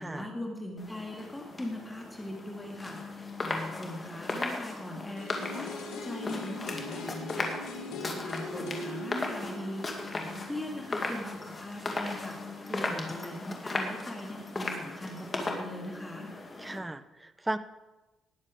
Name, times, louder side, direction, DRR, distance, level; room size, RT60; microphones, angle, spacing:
voice 1, 0.0-5.7 6.0-9.9 10.1-12.4 12.9-16.3, left 1 dB, 10° left, 0 dB, 2.1 m, -40 dB
sound 1, 0.8-16.8, left 2 dB, 30° left, 2.2 m, -37 dB
sound 2, 5.2-11.1 11.4-11.5, left 2 dB, 85° left, 2.7 m, -41 dB
voice 2, 12.7-13.1 16.6-17.6, right 2 dB, 15° right, 13 dB, 0.7 m, -36 dB
19.0 x 7.4 x 4.9 m, 1.1 s
cardioid pair, 90°, 0 cm